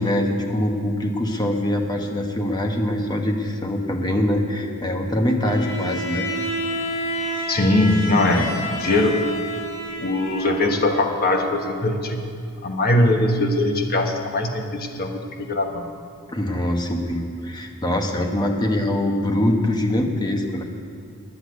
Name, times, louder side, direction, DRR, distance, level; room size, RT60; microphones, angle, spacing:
voice 1, 0.0-6.2 16.3-20.6, left 1 dB, 20° left, 2 dB, 1.1 m, -23 dB
Bowed string instrument, 5.4-11.0, equal, 60° left, 3.1 m, -29 dB
voice 2, 7.5-9.2 10.0-12.2 12.6-15.8, left 2 dB, 45° left, 3 dB, 1.3 m, -21 dB
10.0 x 8.3 x 9.3 m, 2.4 s
head